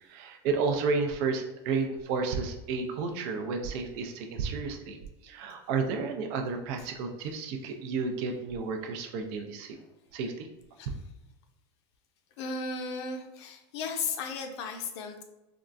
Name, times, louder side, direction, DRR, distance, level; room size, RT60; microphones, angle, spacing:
voice 1, 0.0-5.0 5.2-9.8 10.1-10.5, right 4 dB, 65° right, 4 dB, 0.5 m, -31 dB
voice 2, 12.4-15.2, left 4 dB, 75° left, 5 dB, 0.6 m, -35 dB
3.6 x 2.3 x 2.4 m, 1.0 s
supercardioid pair, 120°, 14 cm